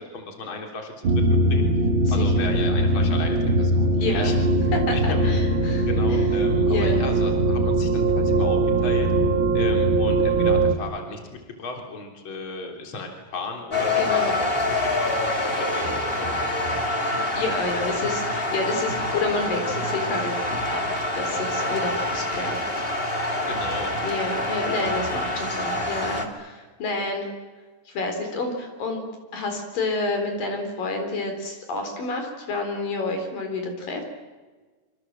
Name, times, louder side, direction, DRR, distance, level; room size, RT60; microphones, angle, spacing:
voice 1, 0.1-4.4 4.9-5.3 5.9-9.1 9.5-11.2 11.6-15.5 15.7-16.8 23.5-23.9, left 3 dB, 35° left, 3 dB, 4.0 m, -35 dB
sound 1, 1.0-10.7, right 2 dB, 45° right, 2.0 m, -21 dB
voice 2, 2.0-2.5 4.0-4.3 4.9-6.2 6.7-7.0 14.0-14.4 17.3-20.4 20.7-22.7 23.0-23.1 24.0-27.3 27.9-29.0 29.3-34.0, left 3 dB, 75° left, 5 dB, 5.7 m, -29 dB
sound 2, 13.7-26.2, left 2 dB, 20° left, 2.4 m, -26 dB
27.0 x 26.0 x 7.6 m, 1.3 s
omnidirectional pair, 4.0 m